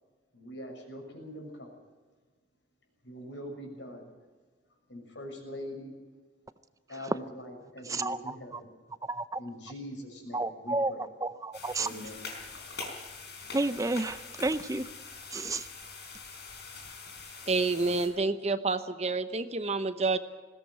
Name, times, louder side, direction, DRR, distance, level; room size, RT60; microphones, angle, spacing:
voice 1, 0.3-1.7 3.0-4.1 4.9-5.9 6.9-8.7 9.4-11.0 11.8-12.2, equal, 85° left, 2 dB, 6.6 m, -43 dB
voice 2, 7.9-8.3 9.1-9.4 10.3-10.9 11.2-11.9 13.5-14.9 15.3-15.7, right 2 dB, 20° right, 13 dB, 0.5 m, -31 dB
sound 1, 11.5-18.1, left 4 dB, 65° left, 4.4 m, -44 dB
voice 3, 17.5-20.2, right 3 dB, 35° right, 10 dB, 1.0 m, -28 dB
20.0 x 17.0 x 8.0 m, 1.4 s
head